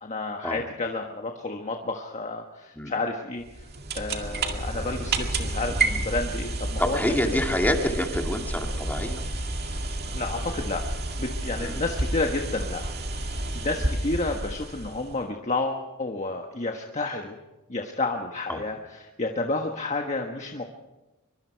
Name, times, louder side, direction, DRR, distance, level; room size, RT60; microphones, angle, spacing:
voice 1, 0.0-3.7 3.9-7.4 10.1-10.9 11.2-17.4 17.7-20.6, left 2 dB, 35° left, 3 dB, 1.4 m, -31 dB
sound 1, 3.4-15.2, right 2 dB, 50° right, 2.2 m, -30 dB
voice 2, 6.8-9.2 11.6-11.8 13.8-13.9 18.5-18.6, left 1 dB, 10° left, 2 dB, 2.3 m, -27 dB
24.0 x 23.0 x 4.7 m, 1.0 s
head